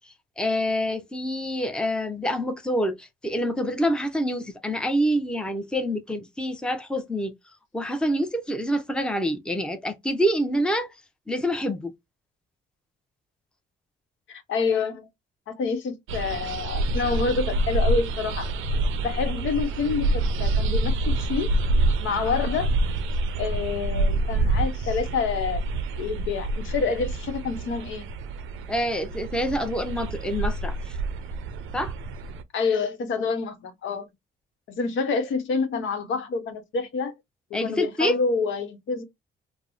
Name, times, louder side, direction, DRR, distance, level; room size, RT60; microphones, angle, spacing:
voice 1, 0.4-7.3 7.7-10.9 11.3-11.9 28.7-30.8 31.7-31.9 33.2-33.3 37.5-38.2, equal, 5° left, 0.6 m, -26 dB
voice 2, 14.3-15.1 15.5-18.5 19.0-21.5 22.0-22.7 23.4-25.6 26.0-28.1 32.5-34.1 34.7-37.1 37.5-39.0, left 4 dB, 75° left, 0.8 m, -27 dB
sound 1, 16.1-32.4, right 2 dB, 85° right, 0.5 m, -27 dB
3.4 x 2.0 x 2.5 m
cardioid pair, 90°, 20 cm